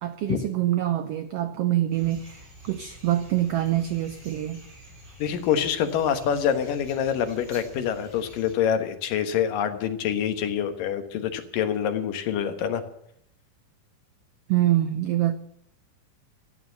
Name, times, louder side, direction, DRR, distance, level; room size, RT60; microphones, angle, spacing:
voice 1, 0.0-4.6 14.5-15.4, right 13 dB, 85° right, 10 dB, 1.4 m, -25 dB
sound 1, 1.9-8.5, equal, 40° right, 7.1 m, -48 dB
voice 2, 5.2-12.8, left 8 dB, 85° left, 8 dB, 3.0 m, -26 dB
14.0 x 9.2 x 9.4 m, 0.73 s
omnidirectional pair, 3.8 m